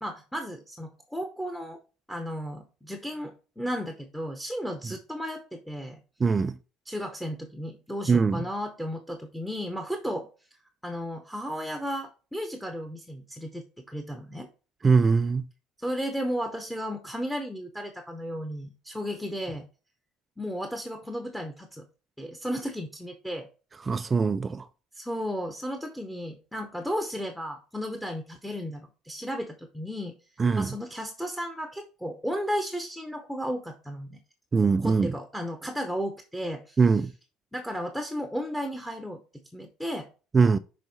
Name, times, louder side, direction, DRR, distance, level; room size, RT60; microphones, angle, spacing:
voice 1, 0.0-1.8 2.1-6.0 6.9-10.3 10.8-14.5 15.8-19.7 20.4-21.9 22.2-23.5 24.9-30.1 30.6-34.2 34.8-36.8 37.5-39.2 39.5-40.1, equal, ahead, 0.8 m, -34 dB
voice 2, 6.2-6.6 8.1-8.4 14.8-15.4 23.8-24.7 30.4-30.7 34.5-35.1 36.8-37.1 40.3-40.6, right 5 dB, 20° right, 0.3 m, -22 dB
6.1 x 4.0 x 5.3 m
cardioid pair, 160°, 0 cm